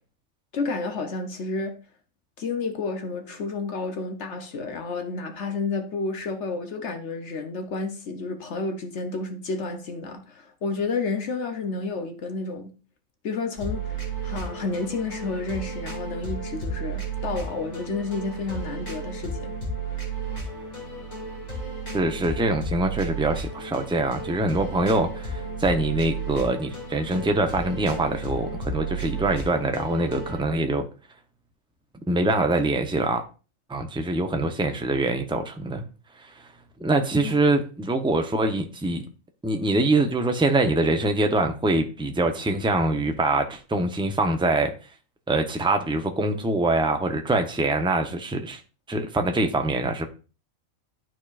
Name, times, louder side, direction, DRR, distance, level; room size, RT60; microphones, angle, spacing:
voice 1, 0.5-1.8 2.4-12.7 13.2-13.9 14.2-19.5 37.2-37.3, left 3 dB, 60° left, 1.0 m, -30 dB
sound 1, 13.6-30.5, right 3 dB, 30° left, 2.5 m, -33 dB
voice 2, 21.9-30.9 32.1-33.2 33.7-35.8 36.8-39.0 39.4-44.7 45.3-48.6 48.9-50.1, right 2 dB, 5° right, 0.5 m, -24 dB
12.5 x 4.5 x 2.4 m
omnidirectional pair, 1.4 m